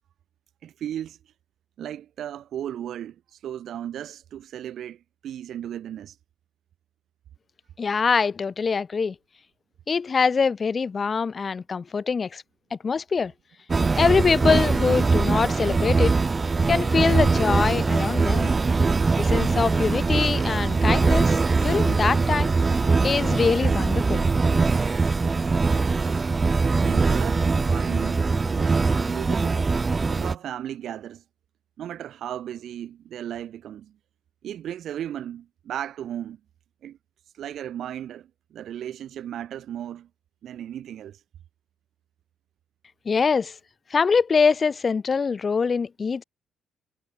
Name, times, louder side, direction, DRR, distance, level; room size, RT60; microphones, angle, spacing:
voice 1, 0.6-1.2 1.8-6.2 26.8-29.7 30.1-31.2 31.8-33.9 34.4-36.4 36.8-37.0 37.3-40.1 40.4-41.2, right 10 dB, 60° right, 3.0 m, -35 dB
voice 2, 7.8-9.1 9.9-12.4 12.7-13.3 14.0-16.1 16.7-18.5 19.2-22.5 23.0-24.2 43.0-43.5 43.9-46.2, left 5 dB, 30° left, 3.0 m, -23 dB
sound 1, 13.7-30.3, right 4 dB, 20° right, 0.4 m, -22 dB
cardioid pair, 130°, 0 cm